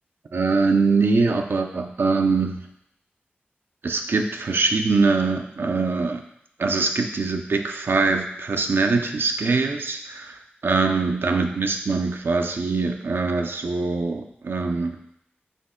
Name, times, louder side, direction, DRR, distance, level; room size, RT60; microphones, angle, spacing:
voice 1, 0.3-2.6 3.8-6.2 6.6-15.0, right 4 dB, 70° right, 5 dB, 0.4 m, -23 dB
4.2 x 2.9 x 3.6 m, 0.75 s
wide cardioid pair, 65°, 4 cm